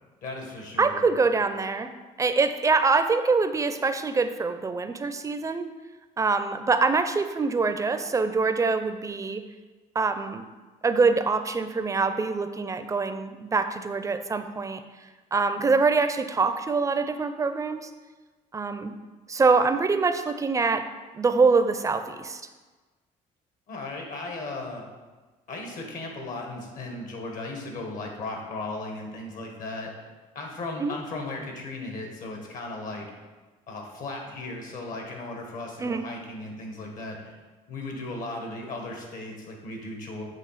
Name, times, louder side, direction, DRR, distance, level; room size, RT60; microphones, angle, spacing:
voice 1, 0.2-1.1 23.7-24.8 25.5-29.9 30.3-33.1 33.7-37.3 37.7-40.2, left 2 dB, 60° left, 2 dB, 1.6 m, -36 dB
voice 2, 0.8-1.9 2.2-5.7 6.2-9.4 9.9-10.4 10.8-14.8 15.3-17.9 18.5-18.9 19.3-20.9 21.1-22.4 30.8-31.0 35.8-36.0, right 4 dB, 20° right, 9 dB, 0.5 m, -24 dB
7.5 x 3.2 x 5.8 m, 1.3 s
cardioid pair, 100°, 15 cm